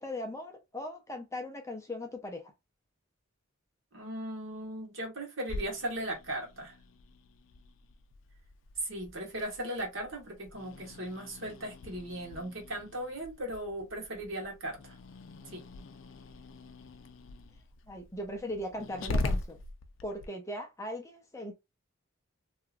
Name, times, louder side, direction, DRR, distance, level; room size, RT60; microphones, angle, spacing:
voice 1, 0.0-2.5 17.9-19.6 20.0-21.5, left 1 dB, 15° left, 0.5 m, -39 dB
voice 2, 3.9-6.7 8.8-15.0 15.5-15.6, right 1 dB, 70° right, 1.4 m, -38 dB
Growling, 5.5-20.3, left 2 dB, 65° left, 0.4 m, -42 dB
2.9 x 2.4 x 2.4 m
head